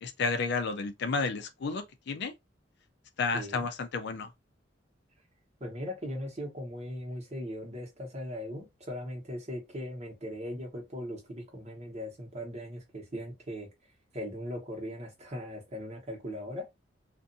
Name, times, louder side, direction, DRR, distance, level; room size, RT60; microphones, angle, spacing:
voice 1, 0.0-2.3 3.2-4.3, left 4 dB, 60° left, 0.4 m, -31 dB
voice 2, 3.3-3.7 5.6-13.7 14.1-16.7, equal, 35° right, 1.1 m, -39 dB
2.5 x 2.4 x 2.6 m
head